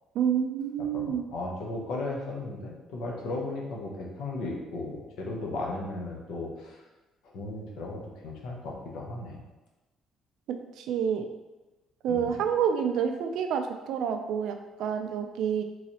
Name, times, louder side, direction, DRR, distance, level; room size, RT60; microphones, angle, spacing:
voice 1, 0.1-1.2 10.5-11.3 12.0-15.6, right 8 dB, 65° right, 6 dB, 0.3 m, -28 dB
voice 2, 0.9-6.8 7.2-9.4 12.1-12.3, left 2 dB, 75° left, -1 dB, 0.8 m, -36 dB
3.9 x 3.1 x 2.8 m, 1.1 s
cardioid pair, 160°, 0 cm